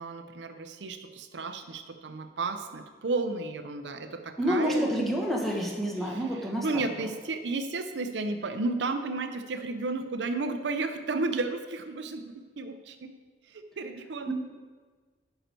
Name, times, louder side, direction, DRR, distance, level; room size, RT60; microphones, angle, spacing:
voice 1, 0.0-5.0 6.0-13.1 13.5-14.3, right 3 dB, 70° right, 8 dB, 0.6 m, -33 dB
voice 2, 4.4-7.1 14.3-14.4, equal, ahead, -2 dB, 1.2 m, -29 dB
10.0 x 5.7 x 4.4 m, 1.5 s
head